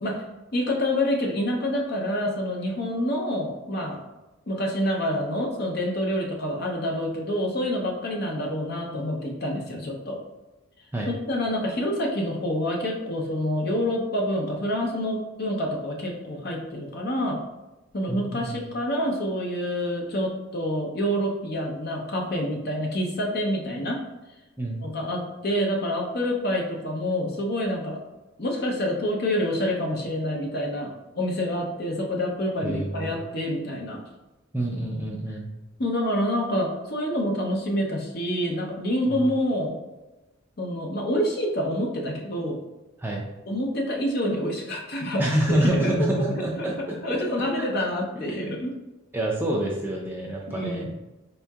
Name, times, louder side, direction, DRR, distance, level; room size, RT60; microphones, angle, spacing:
voice 1, 0.5-4.0 4.5-10.2 11.3-17.4 17.9-24.0 24.8-28.0 28.4-34.0 35.8-39.8 40.6-42.6 43.5-46.7 47.0-48.7 50.5-50.9, equal, 45° left, 0 dB, 0.6 m, -27 dB
voice 2, 18.1-18.6 24.6-24.8 32.6-33.1 34.5-35.5 39.1-39.2 43.0-43.2 45.2-46.7 47.6-47.7 48.2-48.3 49.1-50.9, right 1 dB, 10° right, -2 dB, 0.3 m, -27 dB
4.2 x 2.7 x 2.3 m, 1.1 s
head